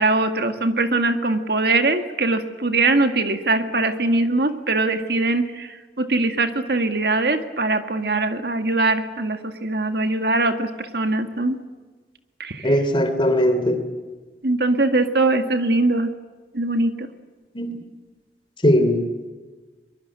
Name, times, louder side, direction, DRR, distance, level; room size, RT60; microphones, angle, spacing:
voice 1, 0.0-11.6 12.4-12.8 14.4-16.1 16.5-17.1, right 2 dB, 60° right, 7 dB, 2.0 m, -22 dB
voice 2, 12.6-13.8 17.5-17.7 18.6-19.0, equal, 25° left, 9 dB, 3.1 m, -19 dB
23.5 x 23.0 x 8.9 m, 1.3 s
head